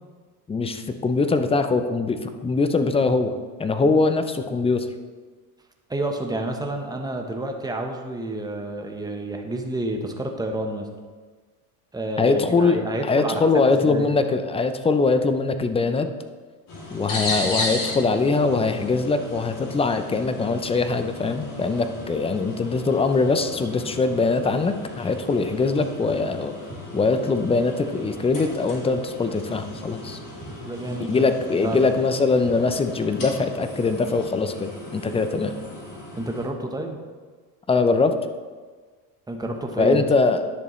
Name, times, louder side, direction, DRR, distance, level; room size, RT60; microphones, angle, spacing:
voice 1, 0.5-4.9 12.2-16.1 16.9-26.6 26.9-30.2 31.0-35.5 37.7-38.2 39.8-40.4, left 3 dB, 15° left, 9 dB, 0.4 m, -22 dB
voice 2, 5.9-10.9 11.9-14.2 30.5-31.3 31.6-31.8 36.1-37.0 39.3-40.1, right 2 dB, 10° right, 3 dB, 1.0 m, -29 dB
sound 1, 16.7-36.5, left 2 dB, 45° left, 2.7 m, -36 dB
10.5 x 6.7 x 3.1 m, 1.5 s
supercardioid pair, 105°, 46 cm